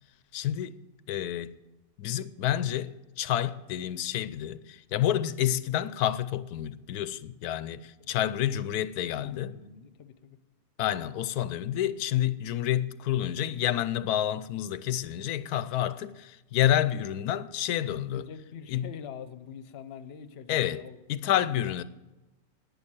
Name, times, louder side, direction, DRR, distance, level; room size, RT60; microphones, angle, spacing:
voice 1, 0.3-0.8 1.1-1.5 2.0-9.5 10.8-18.2 18.7-18.8 20.5-20.8 21.1-21.8, left 11 dB, 85° left, 1.1 m, -29 dB
voice 2, 8.0-8.5 9.2-10.4 18.1-21.8, left 7 dB, 50° left, 1.0 m, -45 dB
11.0 x 9.7 x 8.9 m
omnidirectional pair, 1.6 m